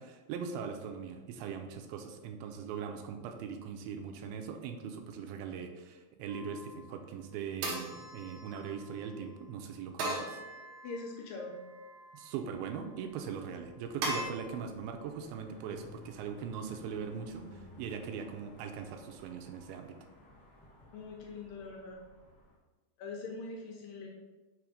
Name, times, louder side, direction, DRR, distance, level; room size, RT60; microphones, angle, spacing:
voice 1, 0.0-10.4 12.1-20.0, right 6 dB, 85° right, 6 dB, 2.4 m, -41 dB
sound 1, 6.3-6.8 7.6-9.0 10.0-11.1 11.6-12.3 14.0-14.2, right 2 dB, 65° right, 2.0 m, -39 dB
voice 2, 10.8-11.6 20.9-22.0 23.0-24.1, left 3 dB, 75° left, 0 dB, 2.2 m, -42 dB
sound 2, 12.4-22.6, left 1 dB, 40° left, 0.9 m, -55 dB
6.0 x 3.4 x 4.9 m, 1.2 s
omnidirectional pair, 4.4 m